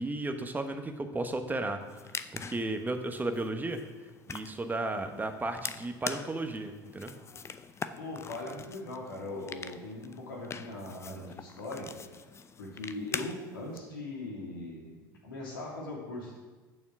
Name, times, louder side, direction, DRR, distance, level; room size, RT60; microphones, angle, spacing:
voice 1, 0.0-1.8 2.3-3.8 4.3-7.1, right 2 dB, 15° right, 6 dB, 1.3 m, -34 dB
sound 1, 1.8-13.8, left 6 dB, 25° left, 0.6 m, -43 dB
voice 2, 8.0-12.2 12.6-16.4, left 2 dB, 75° left, -2 dB, 2.7 m, -40 dB
9.0 x 7.2 x 6.2 m, 1.3 s
figure-of-eight pair, 70°, 11 cm